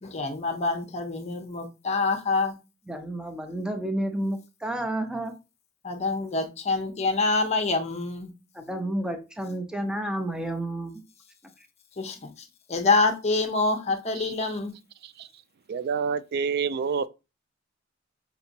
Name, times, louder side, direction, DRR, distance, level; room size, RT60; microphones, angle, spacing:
voice 1, 0.0-2.6 5.8-8.3 12.0-12.2 12.7-14.7, left 3 dB, 35° left, 0.8 m, -26 dB
voice 2, 2.9-5.4 8.5-11.0, right 1 dB, 5° right, 0.6 m, -31 dB
voice 3, 14.2-14.5 15.0-15.3 15.7-17.1, right 6 dB, 55° right, 0.3 m, -28 dB
5.9 x 2.9 x 2.6 m
head